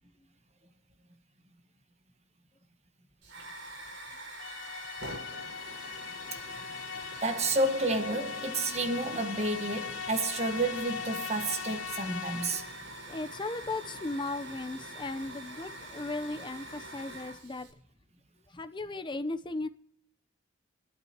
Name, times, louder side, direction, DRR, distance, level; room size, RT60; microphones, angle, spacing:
Hiss / Fire, 3.2-17.7, right 1 dB, 75° right, 5.2 m, -45 dB
sound 1, 4.4-12.8, left 7 dB, 75° left, 0.8 m, -40 dB
voice 1, 7.2-12.7, right 2 dB, 35° right, 1.3 m, -30 dB
voice 2, 13.1-17.7 18.5-19.7, left 2 dB, 25° left, 0.7 m, -36 dB
28.5 x 12.0 x 3.0 m
head